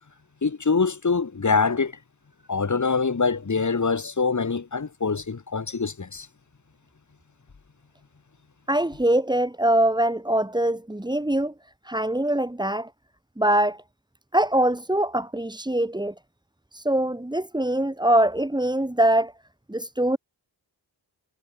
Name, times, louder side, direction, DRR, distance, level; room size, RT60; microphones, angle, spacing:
voice 1, 0.4-1.9 2.5-6.3, left 4 dB, 45° left, 5.6 m, -24 dB
voice 2, 8.7-11.5 11.9-12.9 13.4-13.8 14.3-16.1 16.7-19.3 19.7-20.2, right 1 dB, 10° right, 5.1 m, -23 dB
wide cardioid pair, 120°, 41 cm